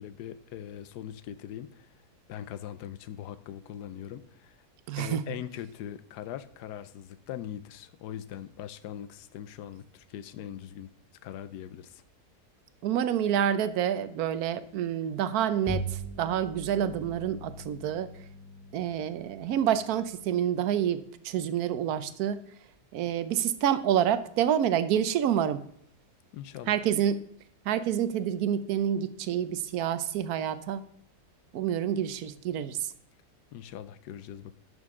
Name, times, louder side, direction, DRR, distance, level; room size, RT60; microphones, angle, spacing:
voice 1, 0.0-1.9 2.3-4.6 5.0-10.9 11.2-12.0 26.3-26.7 33.5-34.6, left 10 dB, 90° left, 15 dB, 1.2 m, -41 dB
voice 2, 4.9-5.2 12.8-18.1 18.7-22.4 22.9-25.6 26.7-27.2 27.7-30.8 31.5-32.9, right 9 dB, 70° right, 14 dB, 1.1 m, -28 dB
Bowed string instrument, 15.7-21.3, right 1 dB, 20° left, 0.5 m, -41 dB
11.0 x 6.4 x 3.7 m, 0.68 s
omnidirectional pair, 1.7 m